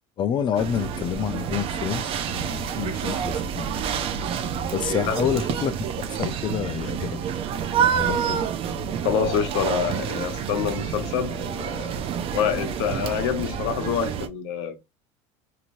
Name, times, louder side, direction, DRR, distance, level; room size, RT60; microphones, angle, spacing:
voice 1, 0.2-4.1 4.7-5.7 6.0-7.2 7.9-8.5, left 8 dB, 35° left, 0.5 m, -28 dB
sound 1, 0.5-14.3, right 8 dB, 45° right, 0.5 m, -28 dB
voice 2, 4.9-5.2 9.0-11.9 12.3-14.8, left 8 dB, 80° left, 0.8 m, -26 dB
3.0 x 2.9 x 2.5 m
supercardioid pair, 130°, 14 cm